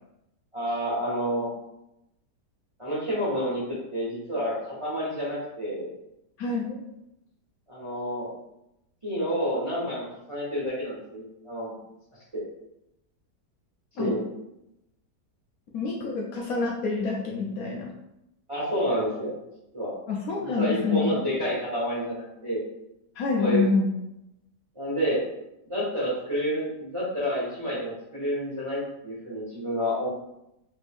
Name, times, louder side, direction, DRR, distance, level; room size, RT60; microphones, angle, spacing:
voice 1, 0.5-1.5 2.8-5.9 7.7-8.3 9.0-11.8 12.3-12.4 14.0-14.2 18.5-19.3 19.7-19.9 20.4-22.6 23.3-23.6 24.7-25.2 25.7-30.1, equal, 30° right, -7 dB, 0.6 m, -29 dB
voice 2, 6.4-6.8 14.0-14.1 15.7-18.0 20.1-21.1 23.2-23.9, left 4 dB, 70° left, -2 dB, 0.9 m, -27 dB
3.4 x 2.5 x 3.4 m, 0.87 s
omnidirectional pair, 1.8 m